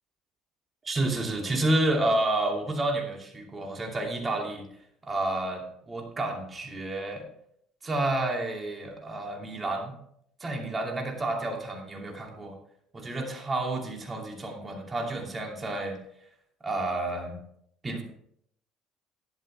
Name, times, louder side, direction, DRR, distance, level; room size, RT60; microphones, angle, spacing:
voice 1, 0.8-4.7 5.0-7.2 7.8-9.9 10.4-12.6 12.9-16.0 16.6-17.4 17.8-18.0, right 2 dB, 25° right, 1 dB, 2.7 m, -30 dB
12.0 x 10.5 x 3.3 m, 0.71 s
cardioid pair, 115°, 0 cm